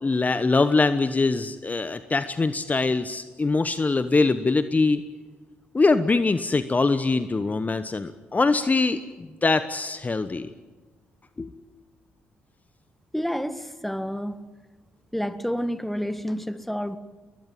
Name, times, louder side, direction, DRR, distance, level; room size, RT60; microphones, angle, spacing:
voice 1, 0.0-5.0 5.7-9.0 9.4-10.5 11.4-11.5, left 3 dB, 30° left, 12 dB, 1.1 m, -23 dB
voice 2, 13.1-14.5 15.1-17.0, equal, 5° left, 12 dB, 1.7 m, -29 dB
21.5 x 20.5 x 9.2 m, 1.3 s
hypercardioid pair, 45°, 5 cm